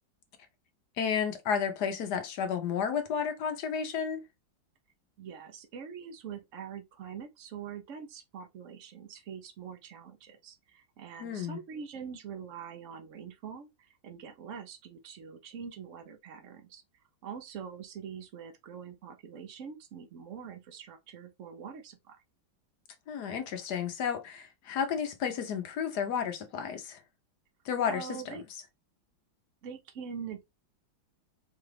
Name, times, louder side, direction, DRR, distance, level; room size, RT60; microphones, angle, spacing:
voice 1, 1.0-4.2 11.2-11.6 23.1-27.0 27.6-28.4, left 7 dB, 65° left, 1.2 m, -32 dB
voice 2, 5.2-16.8 17.2-22.2 27.9-28.4 29.6-30.5, right 7 dB, 60° right, 0.8 m, -44 dB
4.7 x 2.4 x 3.2 m
omnidirectional pair, 2.2 m